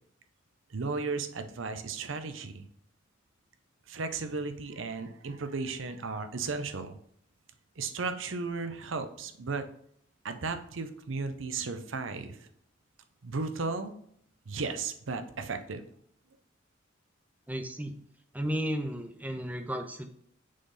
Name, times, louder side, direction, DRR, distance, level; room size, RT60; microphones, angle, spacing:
voice 1, 0.7-2.7 3.9-7.0 7.8-9.7 10.2-12.4 13.2-13.9 14.5-15.8, right 4 dB, 75° right, 9 dB, 0.7 m, -35 dB
voice 2, 17.5-17.9 18.3-20.1, equal, 10° right, 7 dB, 0.6 m, -33 dB
6.4 x 4.1 x 3.8 m, 0.68 s
head